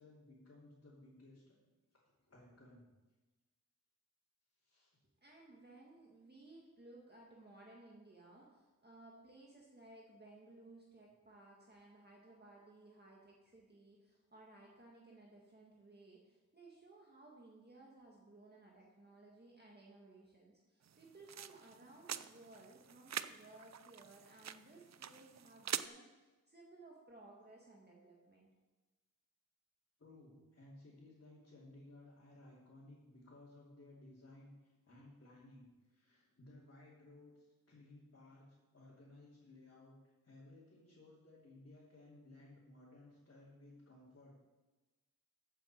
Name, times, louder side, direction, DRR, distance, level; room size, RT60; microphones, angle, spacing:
voice 1, 0.0-1.5 2.3-2.9 4.6-5.0 30.0-39.9 40.2-44.4, left 2 dB, 45° left, -8 dB, 3.2 m, -59 dB
voice 2, 5.2-28.5, right 2 dB, 30° right, -3 dB, 1.8 m, -59 dB
sound 1, 20.8-25.9, right 8 dB, 55° right, 0.5 m, -45 dB
14.5 x 8.0 x 4.5 m, 1.2 s
wide cardioid pair, 115°, 32 cm